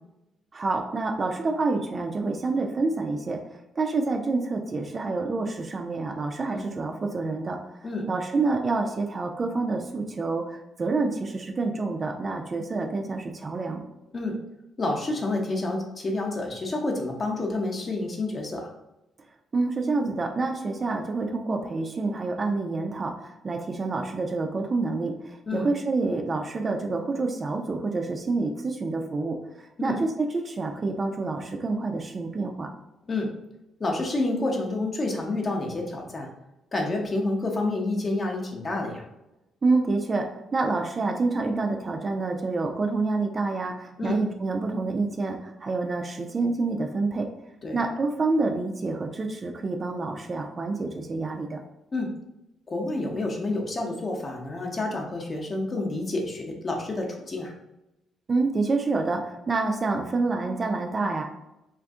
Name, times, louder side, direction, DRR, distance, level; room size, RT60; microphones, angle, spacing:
voice 1, 0.5-3.4 3.8-7.6 8.1-13.8 19.5-29.4 29.8-32.7 39.6-47.3 47.7-51.6 58.3-61.2, right 3 dB, 35° right, 3 dB, 0.4 m, -27 dB
voice 2, 14.8-18.7 25.5-25.7 29.8-30.0 33.1-33.3 33.8-36.3 36.7-39.0 44.0-44.2 47.6-47.8 51.9-52.1 52.7-57.5, left 2 dB, 35° left, 1 dB, 0.7 m, -29 dB
2.5 x 2.5 x 3.5 m, 0.94 s
cardioid pair, 90°, 0 cm